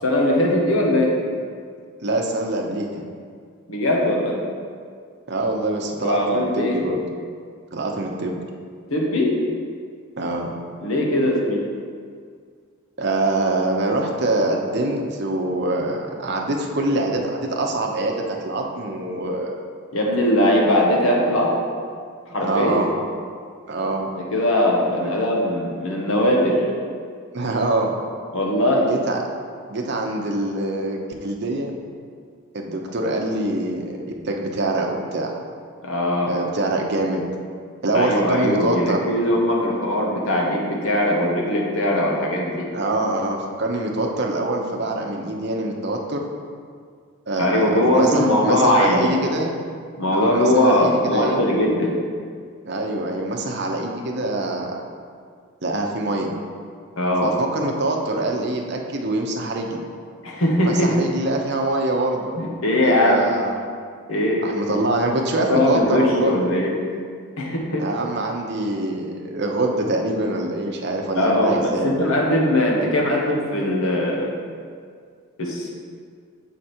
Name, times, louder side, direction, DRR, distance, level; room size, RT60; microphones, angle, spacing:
voice 1, 0.0-1.2 3.7-4.4 6.0-6.8 8.9-9.4 10.8-11.6 19.9-21.6 22.3-22.9 24.1-26.7 28.3-28.9 35.8-36.4 37.9-42.7 47.4-49.2 50.0-52.0 57.0-57.3 60.2-61.0 62.4-63.4 64.1-64.8 65.4-66.7 67.4-67.9 71.1-74.4 75.4-75.7, left 1 dB, 75° left, -1 dB, 1.2 m, -20 dB
voice 2, 2.0-3.0 5.3-7.0 7.7-8.4 10.2-10.5 13.0-19.6 22.4-22.9 23.7-24.1 25.0-25.1 27.3-27.9 28.8-29.2 29.7-31.7 32.5-35.3 36.3-37.2 37.8-39.0 42.7-46.2 47.3-49.6 50.1-51.4 52.6-54.8 55.6-56.3 57.2-59.8 60.6-62.3 62.8-63.5 64.4-66.3 67.8-72.0, right 2 dB, 50° right, 1 dB, 0.8 m, -24 dB
7.3 x 4.9 x 4.4 m, 2.1 s
head